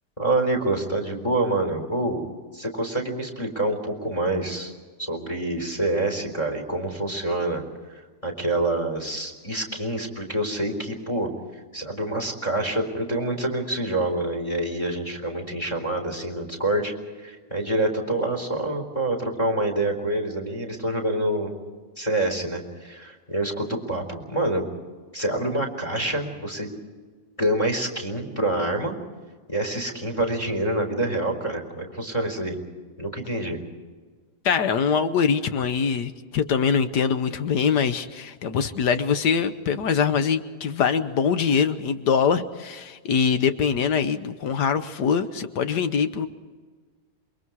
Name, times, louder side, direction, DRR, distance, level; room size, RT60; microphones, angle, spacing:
voice 1, 0.2-2.2 2.5-4.7 5.0-7.6 7.9-11.3 11.7-16.9 17.2-21.5 22.0-24.6 25.1-26.7 27.4-29.0 29.5-32.6 33.0-33.6, right 1 dB, 20° left, 4 dB, 4.1 m, -26 dB
voice 2, 34.4-46.3, left 6 dB, 80° left, 10 dB, 1.6 m, -23 dB
28.0 x 23.0 x 4.8 m, 1.5 s
omnidirectional pair, 1.8 m